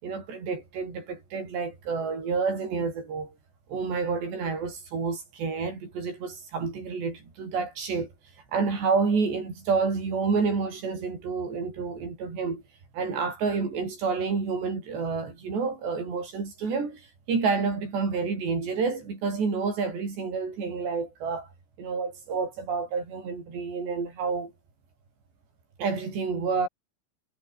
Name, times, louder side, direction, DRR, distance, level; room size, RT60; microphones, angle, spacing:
voice 1, 0.0-3.3 3.7-8.1 8.5-12.6 12.9-21.5 21.8-24.5 25.8-26.7, right 5 dB, 70° right, 10.0 m, -29 dB
omnidirectional pair, 5.2 m